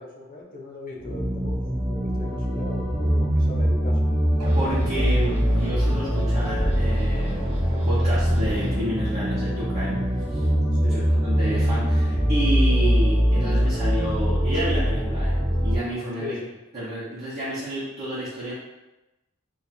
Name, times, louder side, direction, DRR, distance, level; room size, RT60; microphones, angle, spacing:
voice 1, 0.0-4.1 10.7-11.1 16.2-16.5, left 2 dB, 45° left, 0 dB, 0.6 m, -38 dB
sound 1, 1.0-15.8, equal, 10° right, 0.6 m, -22 dB
sound 2, 4.4-8.8, equal, 90° right, 0.8 m, -36 dB
voice 2, 4.5-7.6 7.9-10.0 10.3-10.5 10.9-15.3 15.6-16.4 16.7-18.5, right 1 dB, 35° right, -11 dB, 1.0 m, -30 dB
2.8 x 2.4 x 4.2 m, 0.98 s
head